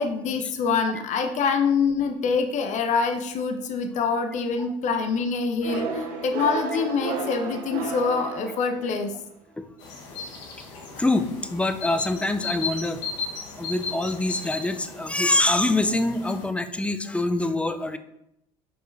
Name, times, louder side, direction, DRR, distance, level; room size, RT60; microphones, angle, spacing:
voice 1, 0.0-9.1 10.9-11.0, left 5 dB, 50° left, 7 dB, 0.7 m, -25 dB
sound 1, 5.6-9.2, right 5 dB, 70° right, 1.0 m, -32 dB
sound 2, 9.8-16.5, left 4 dB, 75° left, 1.4 m, -36 dB
voice 2, 11.0-13.0 13.6-18.0, left 2 dB, 5° left, 10 dB, 0.6 m, -25 dB
6.5 x 4.6 x 3.3 m, 0.82 s
hypercardioid pair, 70°, 16 cm